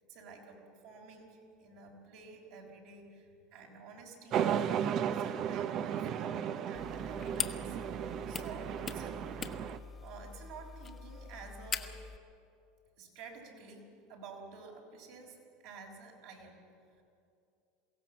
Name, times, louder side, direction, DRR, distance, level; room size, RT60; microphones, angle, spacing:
voice 1, 0.1-4.5 5.1-9.2 10.0-11.9 13.0-15.4 15.6-16.6, right 4 dB, 70° right, -1 dB, 4.8 m, -51 dB
sound 1, 4.3-9.8, right 9 dB, 50° right, 0.8 m, -34 dB
sound 2, 6.7-12.2, left 5 dB, 30° left, 1.2 m, -42 dB
22.5 x 16.5 x 7.3 m, 2.6 s
hypercardioid pair, 95°, 0 cm